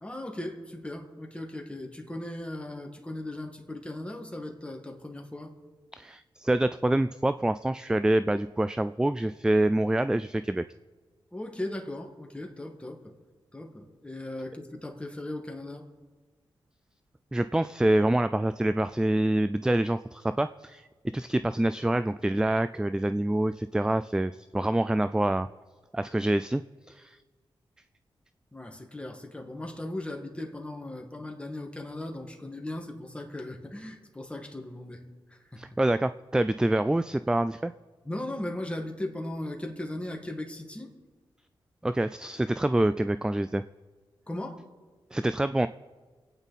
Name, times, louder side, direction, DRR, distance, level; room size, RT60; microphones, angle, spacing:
voice 1, 0.0-5.5 11.3-13.1 13.5-15.8 28.5-35.0 35.3-35.6 38.0-40.9 44.3-44.7, left 1 dB, 10° left, 2 dB, 2.1 m, -38 dB
voice 2, 5.9-10.6 17.3-20.9 21.1-25.5 25.9-26.6 26.9-27.2 35.6-37.7 41.8-43.6 45.1-45.7, right 1 dB, 10° right, 12 dB, 0.3 m, -26 dB
26.5 x 9.1 x 4.1 m, 1.4 s
cardioid pair, 75°, 9 cm